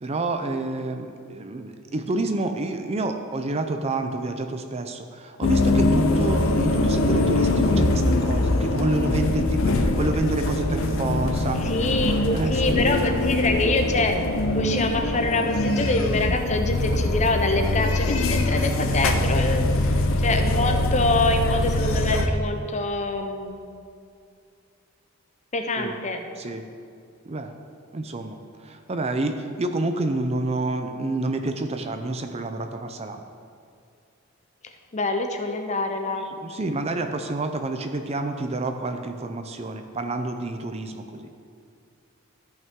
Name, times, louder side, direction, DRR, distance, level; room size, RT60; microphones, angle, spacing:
voice 1, 0.0-11.6 12.0-13.0 25.8-25.9 26.4-26.6 27.3-27.5 27.9-33.2 36.4-41.3, right 2 dB, 30° right, 7 dB, 0.5 m, -29 dB
sound 1, 5.4-22.3, left 2 dB, 65° left, 0.6 m, -23 dB
voice 2, 11.6-23.6 25.5-26.2 34.9-36.3, left 2 dB, 35° left, 5 dB, 0.7 m, -25 dB
13.5 x 5.6 x 3.6 m, 2.4 s
head